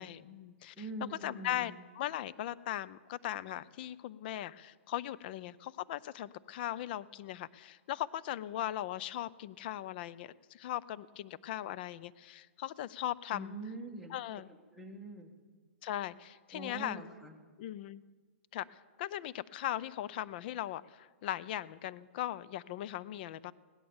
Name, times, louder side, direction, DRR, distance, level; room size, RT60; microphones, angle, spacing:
voice 1, 0.0-0.7 1.2-13.6 14.1-14.5 15.8-17.0 17.6-18.0 18.5-18.7 19.0-23.5, left 13 dB, 50° left, 18 dB, 0.5 m, -39 dB
voice 2, 0.8-1.8 13.3-15.3 16.5-17.4, right 1 dB, ahead, -1 dB, 1.6 m, -44 dB
17.0 x 10.5 x 7.1 m, 1.4 s
hypercardioid pair, 145°, 7 cm